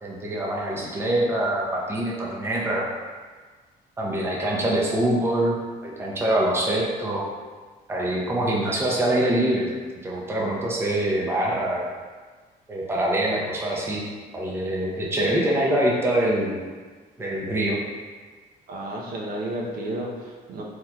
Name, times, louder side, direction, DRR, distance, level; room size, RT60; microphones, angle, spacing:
voice 1, 0.0-2.9 4.0-5.6 5.8-7.2 7.9-9.7 10.0-11.8 12.7-14.0 14.3-16.6 17.2-17.8, right 1 dB, 15° right, -4 dB, 0.6 m, -24 dB
voice 2, 18.7-20.6, right 1 dB, 60° right, -2 dB, 0.6 m, -32 dB
3.5 x 2.9 x 2.2 m, 1.4 s
cardioid pair, 110°, 17 cm